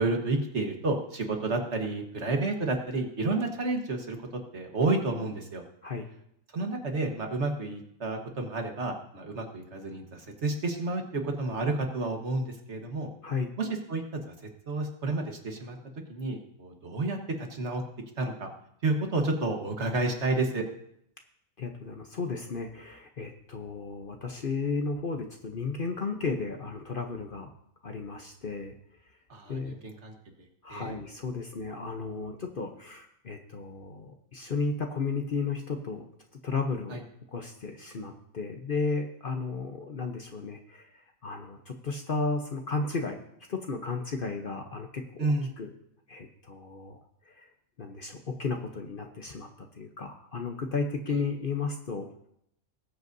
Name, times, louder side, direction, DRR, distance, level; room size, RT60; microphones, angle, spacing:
voice 1, 0.0-5.6 6.5-13.1 13.6-14.2 14.7-15.8 16.1-17.8 18.2-18.5 18.8-20.6 29.3-30.1 30.7-31.0 36.9-37.0 45.2-45.5, right 2 dB, 55° right, 3 dB, 1.6 m, -30 dB
voice 2, 21.6-27.5 27.8-28.7 29.5-29.7 30.6-36.1 36.4-37.0 37.3-43.2 43.5-45.7 46.1-47.0 47.3-47.5 47.8-52.0, left 4 dB, 45° left, 4 dB, 0.9 m, -34 dB
20.0 x 8.0 x 2.7 m, 0.73 s
omnidirectional pair, 1.5 m